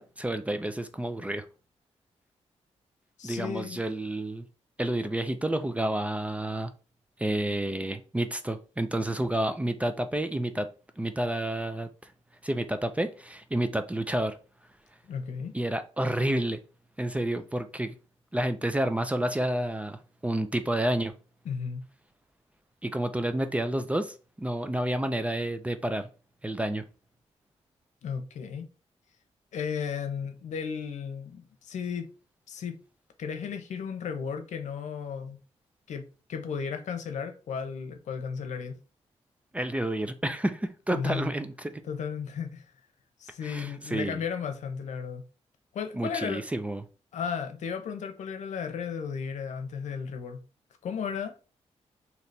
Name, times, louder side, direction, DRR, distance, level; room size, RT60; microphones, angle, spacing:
voice 1, 0.0-1.4 3.2-4.4 4.8-6.7 7.2-10.7 11.0-12.1 12.4-14.4 15.5-16.6 17.0-17.9 18.3-21.1 22.8-26.1 26.4-26.8 39.5-41.8 43.4-44.2 45.9-46.8, right 1 dB, 10° right, 0.4 m, -30 dB
voice 2, 3.2-3.8 15.0-15.5 21.4-21.8 28.0-28.7 29.5-32.1 32.5-32.8 33.2-35.4 35.9-38.8 40.9-41.3 41.8-42.6 43.2-45.2 45.7-46.4 47.1-50.4 50.8-51.4, left 6 dB, 80° left, 0.7 m, -34 dB
3.3 x 2.9 x 4.1 m
cardioid pair, 110°, 12 cm